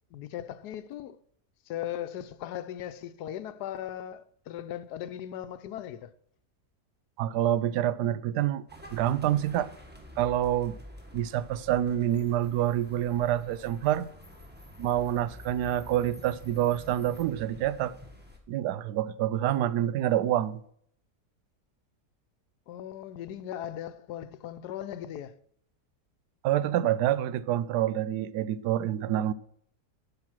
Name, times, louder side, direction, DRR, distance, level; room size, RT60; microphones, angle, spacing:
voice 1, 0.1-1.2 1.7-6.1 22.7-25.4, left 11 dB, 90° left, 1.2 m, -38 dB
voice 2, 7.2-8.6 8.9-9.7 10.2-10.8 11.1-14.1 14.8-17.9 18.5-20.6 26.4-29.3, right 12 dB, 90° right, 1.2 m, -27 dB
sound 1, 8.7-18.4, left 1 dB, 5° right, 1.5 m, -48 dB
12.0 x 5.7 x 6.1 m
omnidirectional pair, 1.7 m